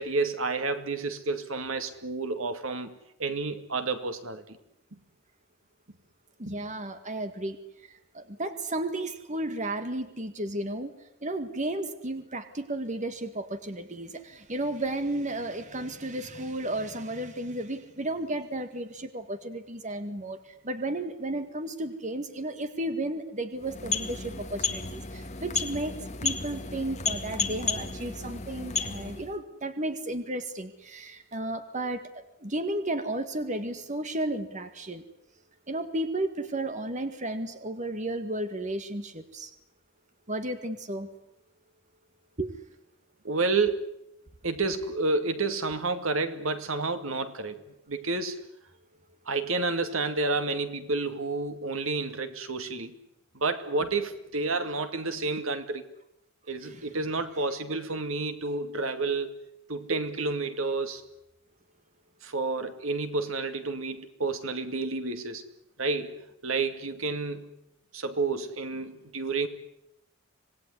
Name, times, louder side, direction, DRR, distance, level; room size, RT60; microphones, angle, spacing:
voice 1, 0.0-4.6 6.5-6.6 43.2-44.0 44.4-47.6 47.9-48.4 49.3-53.0 53.3-55.8 56.5-59.3 59.7-61.1 62.2-65.4 65.8-67.5 67.9-69.5, right 3 dB, 70° right, 2.3 m, -30 dB
voice 2, 6.4-7.6 7.8-26.0 26.2-35.0 35.7-39.5 40.3-41.1 42.4-42.5 56.6-56.9, right 1 dB, 35° right, 1.8 m, -33 dB
sound 1, 23.6-29.4, left 5 dB, 35° left, 2.0 m, -33 dB
26.5 x 19.5 x 9.8 m
head